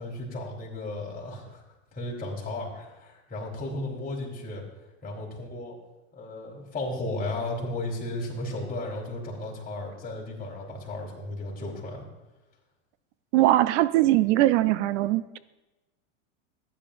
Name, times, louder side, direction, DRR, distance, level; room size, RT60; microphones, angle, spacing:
voice 1, 0.0-1.6 1.9-4.6 5.0-5.8 6.1-12.1, left 2 dB, 20° left, -3 dB, 3.8 m, -34 dB
voice 2, 13.3-15.4, right 15 dB, 65° right, 15 dB, 0.6 m, -21 dB
15.0 x 9.9 x 2.5 m, 1.0 s
hypercardioid pair, 110°, 39 cm